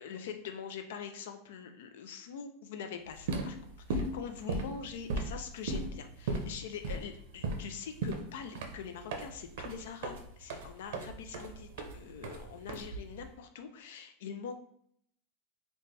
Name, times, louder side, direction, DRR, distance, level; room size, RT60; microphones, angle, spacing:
voice 1, 0.0-3.6 3.9-14.5, left 7 dB, 75° left, 7 dB, 0.4 m, -44 dB
sound 1, 3.1-13.3, right 2 dB, 65° right, 0.6 m, -37 dB
4.0 x 2.1 x 3.2 m, 0.68 s
supercardioid pair, 165°, 0 cm